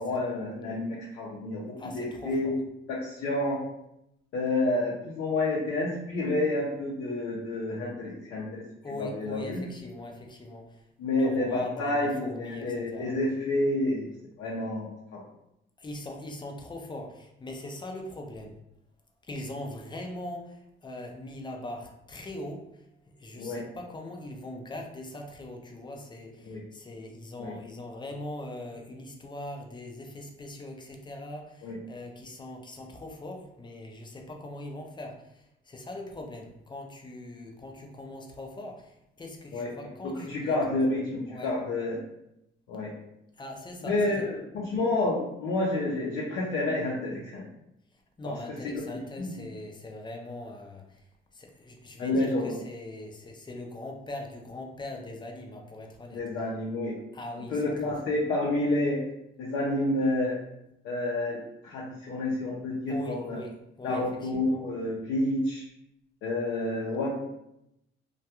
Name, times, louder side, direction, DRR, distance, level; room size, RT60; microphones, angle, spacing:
voice 1, 0.0-2.5 2.9-3.6 4.3-8.6 9.0-9.6 11.0-14.1 14.4-15.2 23.4-23.6 26.4-26.6 27.4-27.5 31.6-31.8 39.5-39.7 40.0-42.0 42.7-42.9 43.8-47.5 48.2-48.3 48.9-49.3 52.0-52.6 56.1-57.0 57.3-59.0 59.4-60.4 60.8-63.4 63.8-65.7 66.2-67.1, left 2 dB, 80° left, -5 dB, 0.6 m, -29 dB
voice 2, 1.8-2.6 8.8-10.9 11.1-13.1 15.8-18.6 19.2-40.6 41.3-41.5 43.4-44.3 47.9-51.1 51.3-56.2 57.1-57.9 62.9-64.6, left 1 dB, 25° left, 2 dB, 0.5 m, -41 dB
2.3 x 2.2 x 2.8 m, 0.83 s
cardioid pair, 90°, 20 cm